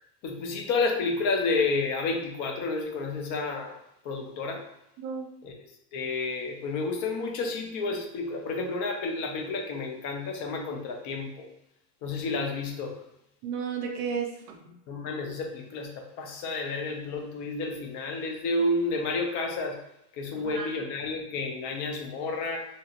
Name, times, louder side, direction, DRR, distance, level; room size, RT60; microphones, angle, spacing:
voice 1, 0.2-3.7 4.0-4.7 5.4-5.5 5.9-11.5 12.0-13.0 14.9-19.8 20.1-22.7, left 3 dB, 40° left, 2 dB, 0.6 m, -30 dB
voice 2, 5.0-5.3 13.4-14.7 20.3-20.7, right 6 dB, 40° right, 3 dB, 0.5 m, -33 dB
2.9 x 2.7 x 2.4 m, 0.83 s
supercardioid pair, 145°, 46 cm